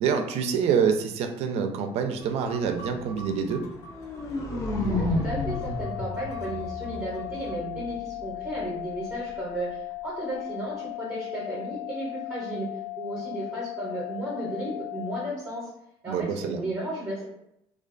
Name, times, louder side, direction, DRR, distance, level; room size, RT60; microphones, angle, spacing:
voice 1, 0.0-3.6 16.1-16.6, right 6 dB, 55° right, 5 dB, 0.4 m, -26 dB
sound 1, 2.2-7.5, right 1 dB, 70° left, 0.9 m, -48 dB
sound 2, 3.7-7.7, left 2 dB, 25° left, 0.4 m, -31 dB
voice 2, 4.9-12.7 13.0-15.7 16.0-17.2, right 1 dB, 20° right, -6 dB, 0.6 m, -34 dB
sound 3, 5.3-15.3, left 23 dB, 85° left, 0.4 m, -37 dB
2.3 x 2.2 x 2.4 m, 0.80 s
cardioid pair, 140°, 12 cm